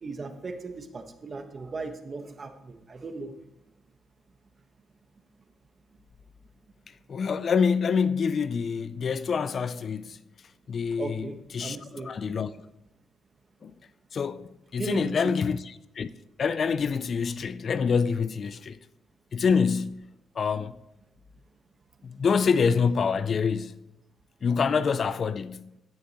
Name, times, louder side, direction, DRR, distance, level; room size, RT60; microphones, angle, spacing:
voice 1, 0.0-3.3 11.0-12.2 14.8-15.3, right 3 dB, 35° right, 1.1 m, -37 dB
voice 2, 7.1-10.2 10.7-12.5 13.6-13.7 14.1-15.6 16.0-16.1 16.4-18.8 19.3-20.0 20.4-20.8 22.0-23.7 24.4-25.6, left 6 dB, 50° left, 0.4 m, -26 dB
16.5 x 6.6 x 2.9 m
cardioid pair, 90°, 0 cm